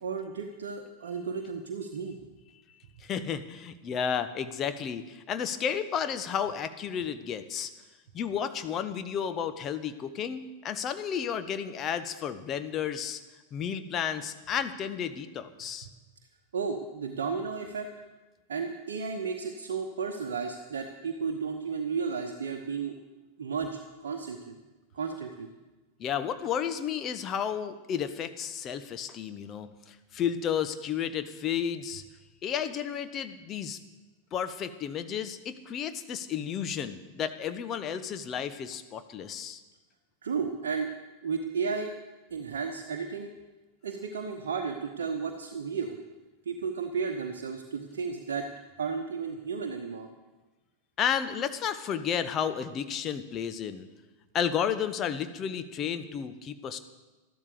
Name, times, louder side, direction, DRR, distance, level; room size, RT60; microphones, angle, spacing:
voice 1, 0.0-2.2 16.5-17.9 18.5-22.9 23.4-24.6 24.9-25.5 40.2-40.9 41.2-41.9 42.3-43.3 43.8-46.0 46.5-48.5 48.8-50.1, right 5 dB, 65° right, 3 dB, 1.0 m, -33 dB
voice 2, 3.0-7.7 8.1-13.2 13.5-15.9 26.0-32.0 32.4-33.8 34.3-39.6 51.0-53.9 54.3-56.8, left 8 dB, 30° left, 10 dB, 1.0 m, -32 dB
13.0 x 12.0 x 6.7 m, 1.2 s
figure-of-eight pair, 90°, 0 cm